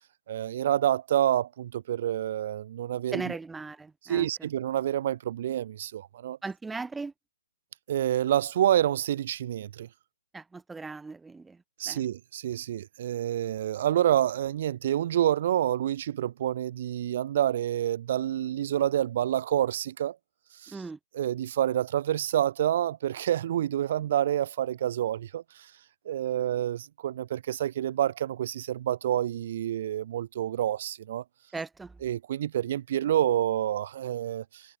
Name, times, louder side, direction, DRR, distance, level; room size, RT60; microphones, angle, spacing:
voice 1, 0.3-3.2 4.1-6.4 7.9-9.9 11.8-20.2 20.6-20.8 21.1-25.4 26.0-31.2 32.0-34.6, right 11 dB, 50° right, 3.1 m, -28 dB
voice 2, 3.1-4.5 6.4-7.1 10.3-12.0 20.7-21.0 31.5-32.0, right 3 dB, 5° right, 2.7 m, -38 dB
hypercardioid pair, 140°, 0 cm